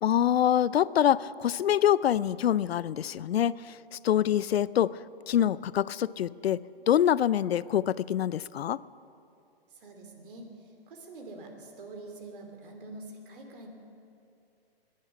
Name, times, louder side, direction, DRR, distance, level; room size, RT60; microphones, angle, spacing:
voice 1, 0.0-5.0 5.3-8.8, left 10 dB, 80° left, 20 dB, 0.5 m, -25 dB
voice 2, 9.7-13.7, right 2 dB, 55° right, 4 dB, 3.0 m, -45 dB
22.5 x 10.5 x 5.8 m, 2.6 s
hypercardioid pair, 150°, 31 cm